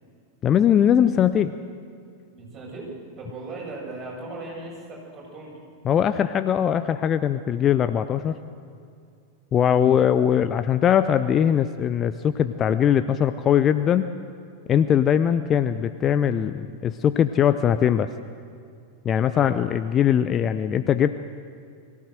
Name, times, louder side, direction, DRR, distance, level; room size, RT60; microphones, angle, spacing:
voice 1, 0.4-1.5 5.8-8.4 9.5-14.1 14.7-18.1 19.0-21.1, left 9 dB, 30° left, 12 dB, 0.6 m, -21 dB
voice 2, 2.3-2.9 3.2-5.5 9.6-9.9 19.3-19.5, right 3 dB, 25° right, -4 dB, 7.7 m, -38 dB
22.0 x 15.5 x 7.8 m, 2.3 s
figure-of-eight pair, 90°, 0 cm